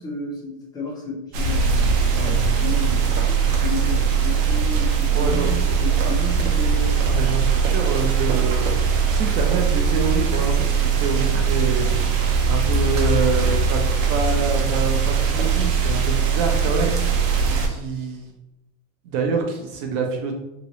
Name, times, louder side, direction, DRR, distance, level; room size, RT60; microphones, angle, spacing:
voice 1, 0.0-7.0, left 3 dB, 10° left, -4 dB, 0.5 m, -32 dB
sound 1, 1.3-17.7, right 6 dB, 90° right, 0.7 m, -20 dB
voice 2, 5.1-6.2 7.1-11.9 12.5-13.8 14.1-18.3 19.0-20.3, right 4 dB, 40° right, 3 dB, 0.6 m, -27 dB
2.9 x 2.9 x 2.9 m, 0.91 s
supercardioid pair, 165°, 38 cm